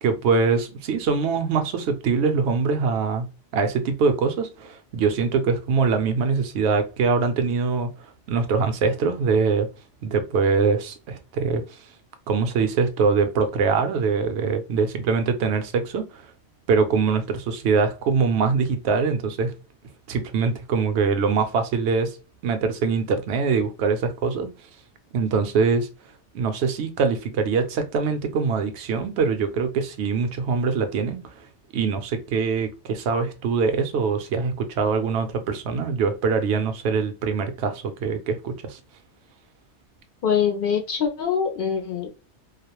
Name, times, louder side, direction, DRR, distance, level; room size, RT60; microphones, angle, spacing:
voice 1, 0.0-3.3 3.5-9.7 10.0-11.6 12.3-16.3 16.7-19.5 20.1-22.2 22.4-24.5 25.1-25.9 26.3-31.4 31.7-38.8, right 5 dB, 70° right, 0.8 m, -23 dB
voice 2, 40.2-42.1, left 7 dB, 60° left, 0.6 m, -23 dB
2.4 x 2.0 x 2.8 m
omnidirectional pair, 1.2 m